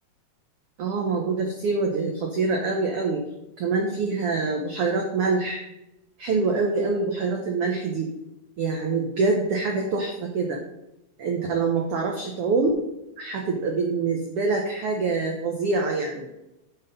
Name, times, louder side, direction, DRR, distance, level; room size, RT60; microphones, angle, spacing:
voice 1, 0.8-3.2 3.6-5.6 6.2-8.1 8.6-10.6 11.2-12.8 13.2-16.3, right 4 dB, 75° right, 1 dB, 1.3 m, -25 dB
9.2 x 4.2 x 5.4 m, 0.91 s
omnidirectional pair, 3.8 m